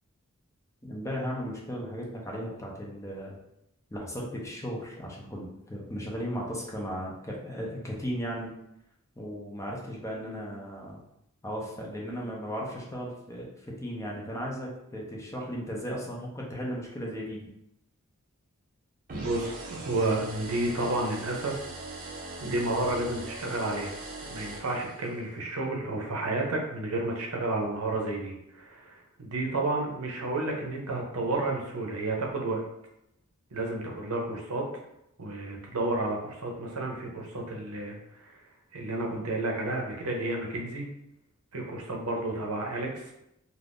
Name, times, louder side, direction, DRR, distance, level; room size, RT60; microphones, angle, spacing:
voice 1, 0.8-3.4 3.9-8.5 9.2-11.0 11.4-13.5 13.8-17.5, equal, 15° left, -2 dB, 0.6 m, -36 dB
sound 1, 19.1-25.3, right 2 dB, 40° right, 0.6 m, -41 dB
voice 2, 19.1-21.6 22.4-23.9 24.2-32.6 33.5-34.7 35.2-38.4 38.7-40.9 41.5-43.1, right 2 dB, 85° right, 1 dB, 0.7 m, -31 dB
2.5 x 2.4 x 3.5 m, 0.82 s
head